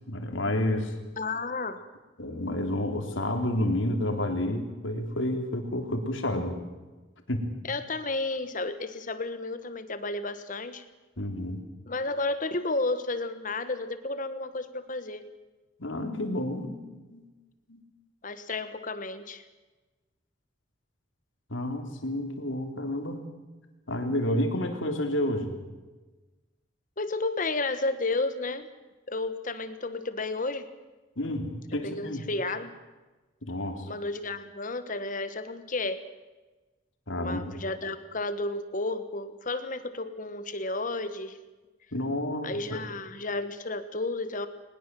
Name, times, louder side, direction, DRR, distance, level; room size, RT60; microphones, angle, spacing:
voice 1, 0.1-0.9 2.2-6.6 7.3-7.5 11.2-11.6 15.8-16.8 17.1-17.2 17.7-17.8 21.5-23.2 23.9-25.5 31.2-32.2 33.4-33.9 37.1-37.5 41.9-42.8, left 1 dB, 85° left, 5 dB, 3.5 m, -30 dB
voice 2, 1.2-1.9 7.7-10.8 11.9-15.2 18.2-19.4 27.0-28.7 29.1-30.6 31.8-32.7 33.9-36.0 37.2-41.4 42.4-44.5, left 2 dB, 45° left, 11 dB, 1.3 m, -32 dB
21.0 x 21.0 x 7.6 m, 1.2 s
head